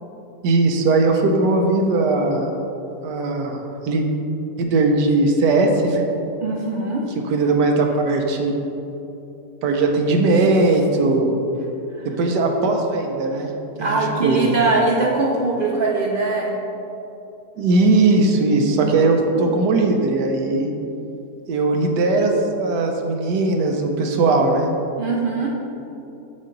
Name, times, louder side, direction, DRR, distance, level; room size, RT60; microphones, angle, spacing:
voice 1, 0.4-2.5 3.0-4.0 4.6-6.0 7.3-8.5 9.6-11.3 12.2-13.5 13.8-14.5 17.6-20.7 21.5-24.7, right 3 dB, 85° right, 2 dB, 1.3 m, -19 dB
voice 2, 6.4-7.1 12.0-12.1 13.8-16.6 19.3-19.5 25.0-25.5, right 3 dB, 60° right, -2 dB, 0.5 m, -21 dB
7.3 x 5.7 x 3.9 m, 2.9 s
omnidirectional pair, 1.8 m